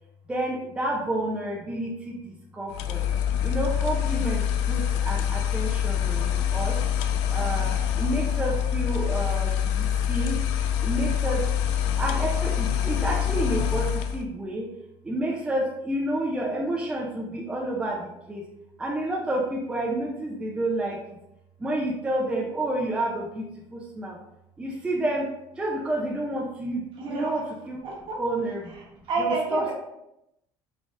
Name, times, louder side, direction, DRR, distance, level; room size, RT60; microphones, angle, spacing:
voice 1, 0.3-3.0 3.4-6.8 7.3-10.5 10.8-11.5 12.0-14.7 15.0-18.4 18.8-21.0 21.6-23.4 23.7-24.2 24.6-25.3 25.6-27.8 28.2-28.7 29.2-29.7, right 1 dB, 10° right, -2 dB, 0.5 m, -29 dB
sound 1, 2.7-14.3, left 9 dB, 85° left, 0.4 m, -25 dB
voice 2, 27.0-27.3 27.8-28.2 28.7-29.7, right 3 dB, 50° right, -2 dB, 1.2 m, -30 dB
4.0 x 3.5 x 2.4 m, 0.86 s
cardioid pair, 140°, 11 cm